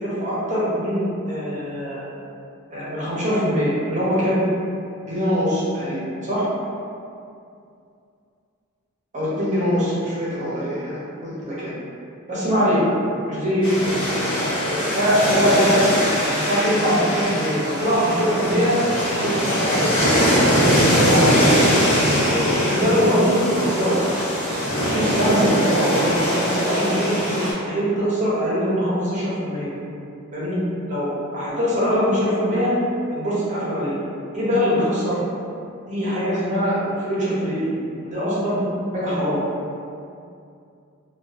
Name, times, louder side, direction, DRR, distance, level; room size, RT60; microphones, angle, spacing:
voice 1, 0.0-2.1 2.7-4.4 5.1-6.4 9.1-11.7 12.3-12.9 13.3-13.9 14.6-15.9 16.2-18.7 19.1-21.6 22.3-24.0 24.6-29.7 30.3-30.6 30.9-32.7 33.1-33.9 34.3-35.2 35.9-37.7 38.0-38.6 38.9-39.4, equal, 35° right, -8 dB, 0.7 m, -22 dB
sound 1, 13.6-27.5, equal, 60° left, 1.1 m, -21 dB
2.6 x 2.3 x 2.4 m, 2.5 s
head